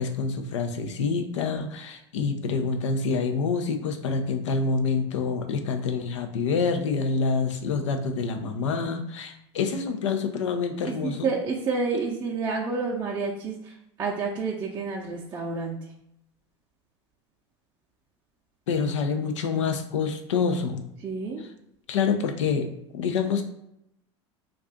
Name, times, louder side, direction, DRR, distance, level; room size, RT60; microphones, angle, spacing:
voice 1, 0.0-11.3 18.7-20.8 21.9-23.4, left 5 dB, 80° left, 6 dB, 0.4 m, -27 dB
voice 2, 10.8-15.8 21.0-21.4, right 4 dB, 30° right, -4 dB, 0.5 m, -29 dB
2.5 x 2.4 x 3.4 m, 0.82 s
hypercardioid pair, 80°, 15 cm